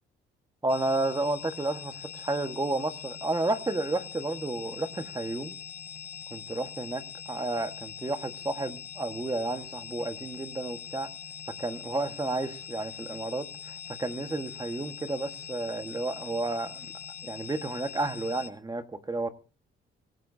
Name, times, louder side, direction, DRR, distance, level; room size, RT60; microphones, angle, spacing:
voice 1, 0.6-5.6 6.3-7.0 7.3-11.1 11.6-16.9 17.2-19.3, right 2 dB, 20° right, 8 dB, 1.5 m, -31 dB
sound 1, 0.7-18.5, left 8 dB, 60° left, 4.1 m, -43 dB
25.0 x 13.0 x 2.8 m, 0.36 s
cardioid pair, 90°, 20 cm